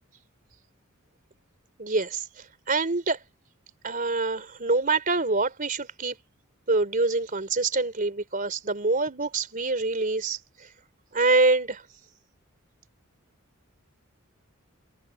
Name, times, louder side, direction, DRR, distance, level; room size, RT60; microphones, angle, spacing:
voice 1, 1.8-3.2 3.8-6.2 6.7-10.7 11.1-11.8, right 3 dB, 40° right, 3.8 m, -25 dB
head